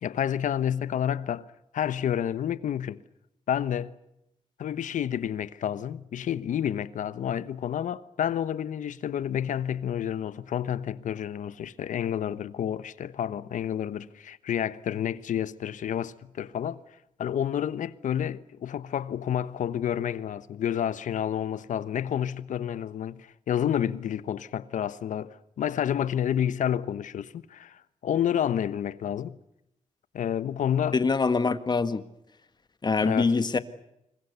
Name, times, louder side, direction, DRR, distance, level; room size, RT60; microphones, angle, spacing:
voice 1, 0.0-1.5 1.7-3.0 3.5-4.0 4.6-16.8 17.2-29.4 30.1-31.0 33.0-33.3, left 9 dB, 85° left, 1.2 m, -29 dB
voice 2, 30.9-32.0 32.8-33.6, left 4 dB, 35° left, 1.7 m, -24 dB
26.5 x 22.5 x 8.2 m
cardioid pair, 105°, 13 cm